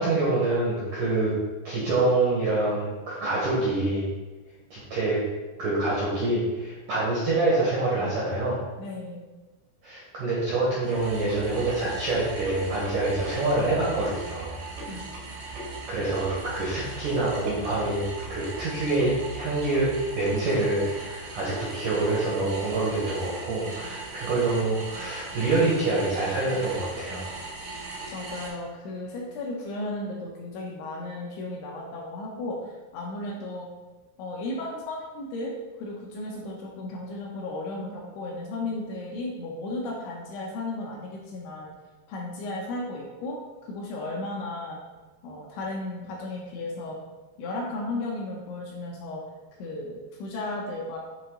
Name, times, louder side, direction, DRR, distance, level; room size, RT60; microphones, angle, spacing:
voice 1, 0.0-1.3 1.6-4.1 4.7-5.2 5.6-8.6 9.8-14.6 15.9-27.3, right 2 dB, 75° right, -6 dB, 1.9 m, -26 dB
voice 2, 8.8-9.2 14.9-15.1 28.1-33.7 34.2-41.7 42.1-44.8 45.2-47.0 47.4-49.2 49.6-51.0, left 2 dB, 75° left, -2 dB, 3.0 m, -34 dB
sound 1, 10.8-28.5, right 3 dB, 90° right, 4.7 m, -38 dB
10.0 x 3.6 x 3.9 m, 1.2 s
omnidirectional pair, 5.9 m